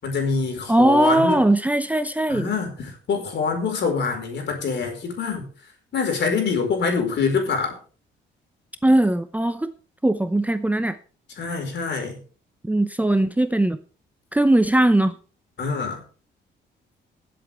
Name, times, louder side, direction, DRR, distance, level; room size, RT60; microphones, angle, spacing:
voice 1, 0.0-1.4 2.3-5.5 5.9-7.8 11.4-12.2 15.6-16.0, left 5 dB, 60° left, 3 dB, 4.7 m, -25 dB
voice 2, 0.7-2.5 8.8-9.7 10.0-11.0 12.6-13.8 14.3-15.1, right 1 dB, 5° right, 11 dB, 0.7 m, -19 dB
21.5 x 7.8 x 3.5 m, 0.39 s
cardioid pair, 90°, 20 cm